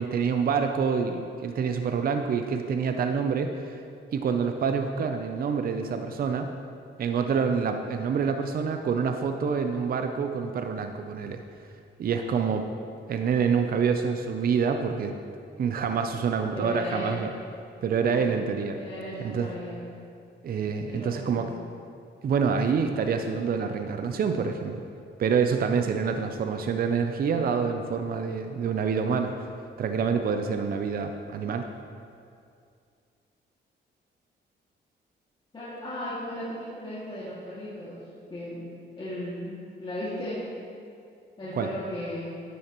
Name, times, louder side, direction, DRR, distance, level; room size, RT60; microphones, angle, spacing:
voice 1, 0.0-3.8 4.1-6.5 7.0-11.4 12.0-12.7 13.1-15.2 15.6-17.3 17.8-18.8 19.2-19.5 20.4-21.5 22.2-24.8 25.2-29.5 29.8-31.7 41.5-41.7, right 6 dB, 50° right, 6 dB, 0.6 m, -27 dB
voice 2, 16.5-17.2 18.2-18.3 18.8-19.8 20.9-21.6 35.5-38.0 38.3-38.7 39.0-40.4 41.4-42.4, left 1 dB, 25° left, -10 dB, 2.2 m, -36 dB
10.5 x 9.8 x 3.0 m, 2.4 s
cardioid pair, 100°, 19 cm